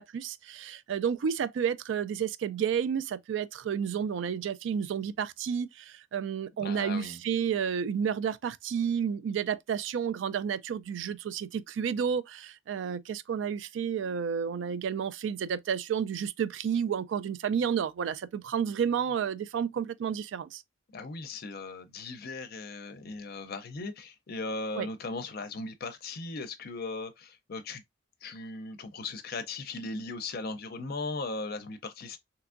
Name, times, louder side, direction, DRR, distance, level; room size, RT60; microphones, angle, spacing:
voice 1, 0.0-20.6 24.8-24.9, right 7 dB, 65° right, 0.3 m, -31 dB
voice 2, 6.6-7.2 20.9-27.8 28.2-32.2, left 3 dB, 50° left, 0.5 m, -38 dB
3.4 x 2.9 x 2.4 m
head